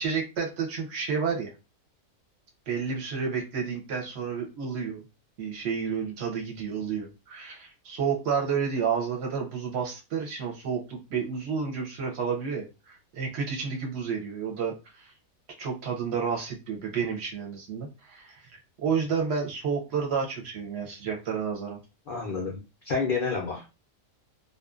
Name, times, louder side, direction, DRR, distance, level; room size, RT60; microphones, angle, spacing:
voice 1, 0.0-1.5 2.7-5.0 5.4-15.1 15.6-18.4 18.8-21.8, right 6 dB, 55° right, 1 dB, 0.8 m, -30 dB
voice 2, 22.1-22.6 22.9-23.8, left 4 dB, 70° left, -1 dB, 0.5 m, -29 dB
2.6 x 2.3 x 2.3 m, 0.28 s
omnidirectional pair, 1.5 m